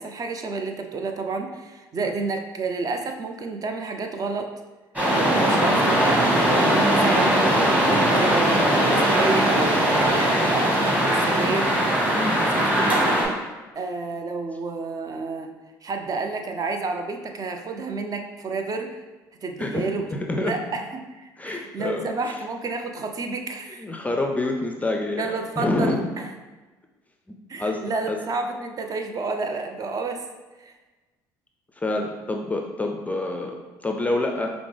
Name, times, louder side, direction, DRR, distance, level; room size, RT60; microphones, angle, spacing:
voice 1, 0.0-4.5 5.1-13.2 13.8-15.5 15.8-18.9 19.4-23.9 25.2-26.3 27.5-30.2 30.6-30.7, right 4 dB, 40° right, 5 dB, 0.5 m, -30 dB
sound 1, 5.0-13.3, right 1 dB, 15° right, 1.5 m, -20 dB
voice 2, 19.6-20.6 21.4-22.4 23.8-26.0 27.3-27.8 28.1-28.2 31.8-33.6 33.8-34.5, left 2 dB, 15° left, 1 dB, 0.4 m, -27 dB
4.9 x 2.0 x 3.3 m, 1.2 s
hypercardioid pair, 65°, 10 cm